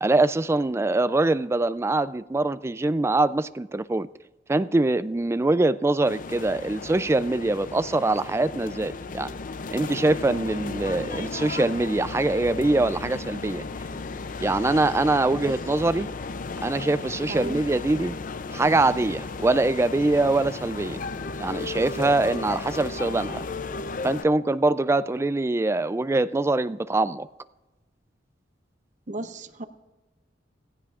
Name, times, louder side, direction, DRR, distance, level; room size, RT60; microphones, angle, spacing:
voice 1, 0.0-4.1 4.5-9.3 9.7-13.6 14.4-16.1 16.6-18.2 18.5-21.0 21.4-23.4 24.0-27.3, right 2 dB, 15° right, 0.3 m, -23 dB
sound 1, 6.1-24.3, left 3 dB, 45° left, 0.5 m, -35 dB
voice 2, 17.3-17.6 29.1-29.7, right 2 dB, 45° right, 0.8 m, -34 dB
17.5 x 15.5 x 2.5 m
head